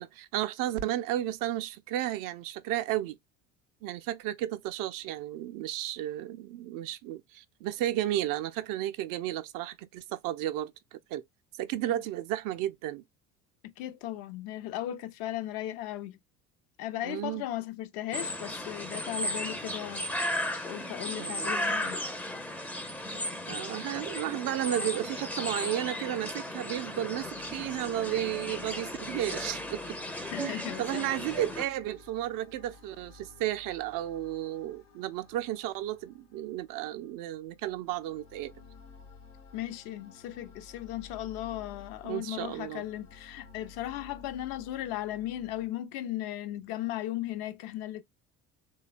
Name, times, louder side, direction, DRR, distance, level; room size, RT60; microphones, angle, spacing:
voice 1, 0.0-3.2 3.8-11.2 11.6-13.0 17.0-17.4 21.1-21.5 23.5-38.5 42.0-42.8, right 13 dB, 50° right, 0.4 m, -33 dB
voice 2, 13.6-16.2 16.8-20.0 20.6-22.0 28.1-28.2 30.3-31.1 39.5-48.0, left 13 dB, 55° left, 0.5 m, -37 dB
sound 1, 18.1-31.7, left 1 dB, 5° left, 0.4 m, -35 dB
sound 2, 26.4-45.7, left 5 dB, 80° left, 1.0 m, -54 dB
3.2 x 2.2 x 2.3 m
hypercardioid pair, 65°, 44 cm